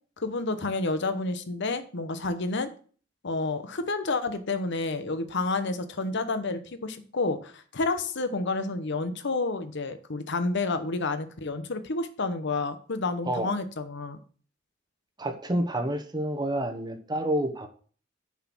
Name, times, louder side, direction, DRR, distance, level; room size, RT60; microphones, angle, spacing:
voice 1, 0.2-2.7 3.2-14.2, left 3 dB, 60° left, 10 dB, 1.0 m, -30 dB
voice 2, 15.2-17.7, right 1 dB, 20° right, 4 dB, 1.0 m, -29 dB
7.2 x 6.1 x 6.2 m, 0.42 s
head